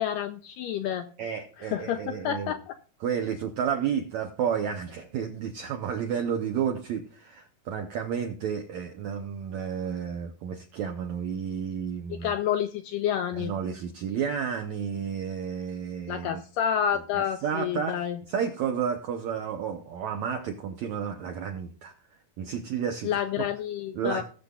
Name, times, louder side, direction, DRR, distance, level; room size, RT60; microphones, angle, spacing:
voice 1, 0.0-1.1 1.6-2.8 12.1-13.5 16.1-18.2 23.0-24.2, left 9 dB, 85° left, 7 dB, 1.9 m, -29 dB
voice 2, 1.2-2.5 3.0-12.3 13.3-16.4 17.1-18.0 18.3-21.9 22.4-23.2 23.9-24.2, right 7 dB, 80° right, 5 dB, 1.6 m, -31 dB
20.0 x 6.9 x 2.4 m, 0.41 s
omnidirectional pair, 4.4 m